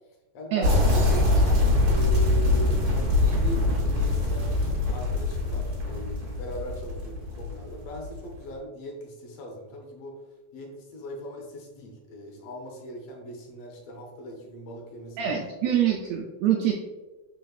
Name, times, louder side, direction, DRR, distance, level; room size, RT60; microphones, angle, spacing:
voice 1, 0.3-1.3 1.8-4.5 4.9-10.1 10.5-15.4, left 1 dB, 70° left, 1 dB, 1.7 m, -40 dB
sound 1, 0.6-8.3, left 2 dB, 60° right, 1.5 m, -23 dB
voice 2, 15.2-16.7, right 9 dB, 80° right, 0 dB, 1.6 m, -25 dB
4.3 x 3.9 x 2.3 m, 1.2 s
omnidirectional pair, 3.4 m